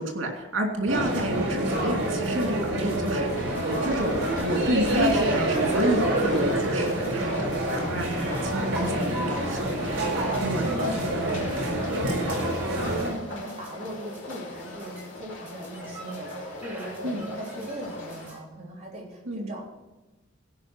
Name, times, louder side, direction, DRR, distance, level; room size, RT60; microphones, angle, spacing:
voice 1, 0.0-3.3 3.5-9.7 10.4-10.7 17.0-17.2 19.3-19.5, right 1 dB, 90° right, 2 dB, 2.8 m, -30 dB
sound 1, 0.9-13.1, right 1 dB, 70° right, 4.5 m, -27 dB
sound 2, 2.2-18.4, right 1 dB, 10° right, 4.6 m, -43 dB
sound 3, 3.0-18.3, left 3 dB, 70° left, 3.1 m, -41 dB
voice 2, 8.6-9.8 10.6-12.6 13.0-19.6, right 1 dB, 35° right, -4 dB, 3.4 m, -40 dB
16.5 x 5.7 x 6.1 m, 1.1 s
head